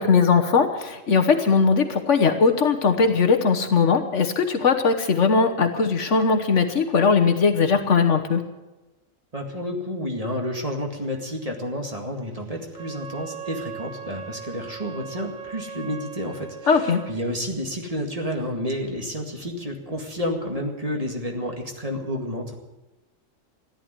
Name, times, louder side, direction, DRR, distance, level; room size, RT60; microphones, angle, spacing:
voice 1, 0.0-8.4 16.7-17.0, left 5 dB, 65° left, 6 dB, 1.4 m, -19 dB
voice 2, 9.3-22.6, equal, 25° right, 2 dB, 2.1 m, -30 dB
Wind instrument woodwind instrument, 12.7-17.2, right 7 dB, 75° right, 1.5 m, -39 dB
14.0 x 10.5 x 9.3 m, 1.1 s
omnidirectional pair, 1.4 m